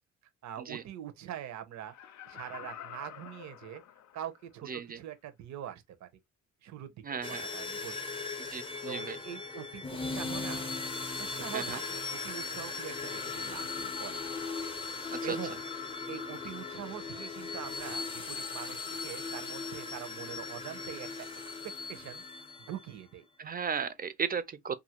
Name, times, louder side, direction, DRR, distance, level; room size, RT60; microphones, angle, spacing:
voice 1, 0.4-3.8 4.1-6.1 6.6-8.1 8.8-10.7 11.2-14.3 14.9-15.6 16.1-21.6 21.9-22.2 22.7-23.3, right 11 dB, 65° right, 0.7 m, -43 dB
Laughter, 1.8-4.4 4.9-5.0, left 11 dB, 70° left, 0.5 m, -48 dB
voice 2, 4.7-5.0 7.0-7.5 8.4-9.2 11.5-11.8 15.1-15.4 23.4-24.8, right 6 dB, 30° right, 0.4 m, -36 dB
sound 1, 7.2-22.8, left 4 dB, 20° left, 0.6 m, -38 dB
2.7 x 2.5 x 2.8 m
cardioid pair, 90°, 30 cm